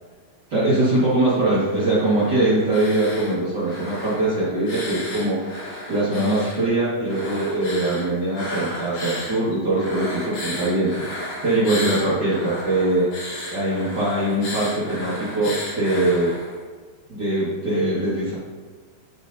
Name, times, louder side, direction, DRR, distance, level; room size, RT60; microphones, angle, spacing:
voice 1, 0.5-5.4 5.9-16.3 17.1-18.3, right 2 dB, 65° right, -10 dB, 1.0 m, -22 dB
sound 1, 1.6-3.4 3.6-6.6 7.0-9.4 9.7-16.6, left 1 dB, 70° left, 3.7 m, -34 dB
11.0 x 3.8 x 2.7 m, 1.5 s
omnidirectional pair, 4.5 m